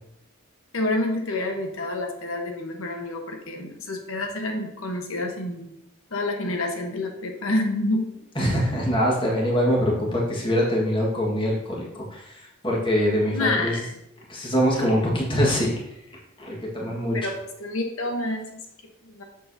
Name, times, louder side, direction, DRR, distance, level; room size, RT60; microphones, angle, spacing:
voice 1, 0.7-5.7 6.1-8.1 13.3-13.9 17.1-18.7 19.0-19.2, left 2 dB, 75° left, 3 dB, 1.2 m, -28 dB
voice 2, 8.3-13.7 14.3-15.7 16.4-17.2, equal, 20° left, -3 dB, 1.6 m, -23 dB
8.6 x 6.4 x 2.8 m, 0.82 s
head